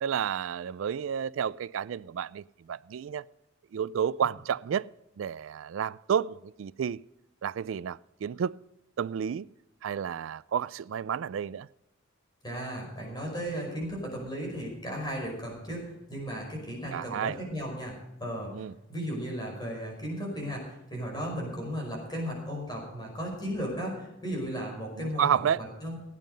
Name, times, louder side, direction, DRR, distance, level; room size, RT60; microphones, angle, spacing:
voice 1, 0.0-3.2 3.7-4.9 5.2-7.0 7.4-8.6 9.0-9.5 9.8-11.7 16.9-17.4 18.5-18.7 25.0-25.7, right 8 dB, 75° right, 0.3 m, -31 dB
voice 2, 12.4-26.0, equal, 20° left, 5.3 m, -35 dB
17.0 x 9.3 x 5.3 m
head